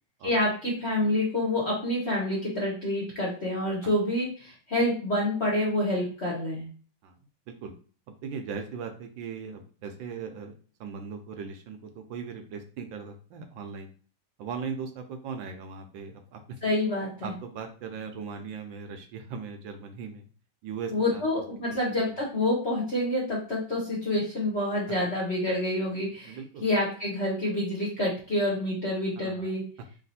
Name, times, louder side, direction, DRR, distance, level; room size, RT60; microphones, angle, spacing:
voice 1, 0.2-6.6 16.6-17.3 20.9-29.6, left 1 dB, 45° left, -4 dB, 0.9 m, -28 dB
voice 2, 8.2-10.5 10.8-13.9 14.4-16.4 17.2-20.2 20.6-21.2 26.2-26.7 29.2-29.5, right 6 dB, 75° right, 5 dB, 1.3 m, -38 dB
3.3 x 2.9 x 4.1 m, 0.41 s
omnidirectional pair, 2.3 m